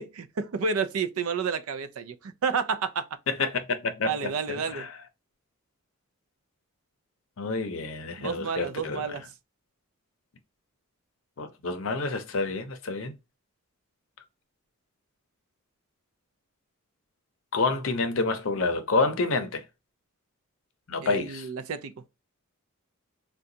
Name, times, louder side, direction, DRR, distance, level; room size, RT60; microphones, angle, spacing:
voice 1, 0.0-3.1 4.0-4.9 8.2-9.2 21.0-21.9, right 5 dB, 70° right, 0.4 m, -30 dB
voice 2, 3.3-4.1 4.5-5.0 7.4-9.2 11.4-13.1 17.5-19.6 20.9-21.5, left 3 dB, 65° left, 0.6 m, -28 dB
3.7 x 2.3 x 2.6 m
head